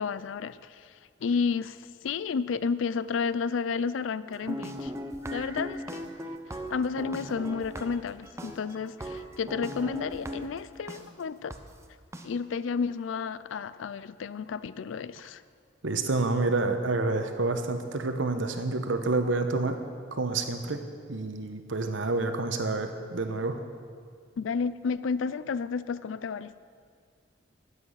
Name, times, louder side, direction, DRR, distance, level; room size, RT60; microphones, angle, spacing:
voice 1, 0.0-4.9 5.3-6.1 6.7-11.6 12.2-15.4 24.4-26.6, left 5 dB, 75° left, 16 dB, 0.4 m, -31 dB
sound 1, 4.3-11.0 11.5-11.6 12.1-12.2, equal, 15° right, 0.7 m, -38 dB
voice 2, 15.8-19.7 20.1-20.8 21.1-23.6, right 3 dB, 70° right, 7 dB, 1.0 m, -28 dB
13.0 x 8.3 x 5.6 m, 2.1 s
head